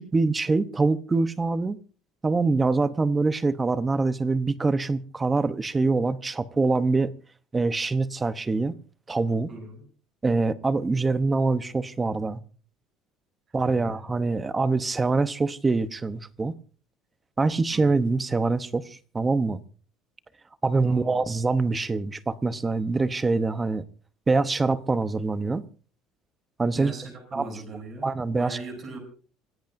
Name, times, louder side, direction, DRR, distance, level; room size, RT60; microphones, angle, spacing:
voice 1, 0.0-1.8 2.2-7.1 7.5-8.7 9.1-9.5 10.2-12.4 13.5-16.5 17.4-19.6 20.6-23.8 24.3-25.6 26.6-26.9 27.3-27.4 28.0-28.6, right 3 dB, 15° right, 0.8 m, -24 dB
voice 2, 9.5-9.8 13.6-14.0 17.7-17.9 20.8-21.2 26.7-29.0, right 3 dB, 30° right, 7.6 m, -39 dB
26.0 x 16.5 x 2.6 m
cardioid pair, 160°, 0 cm